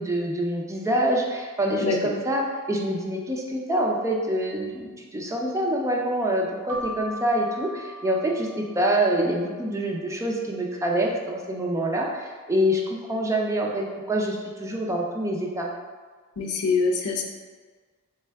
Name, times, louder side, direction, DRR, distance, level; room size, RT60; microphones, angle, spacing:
voice 1, 0.0-2.4 2.7-15.7, right 1 dB, 15° right, -1 dB, 0.4 m, -26 dB
Keyboard (musical), 6.7-9.2, equal, 75° right, 0.7 m, -38 dB
voice 2, 16.4-17.2, left 4 dB, 85° left, 2 dB, 0.6 m, -24 dB
3.6 x 3.3 x 3.4 m, 1.5 s
head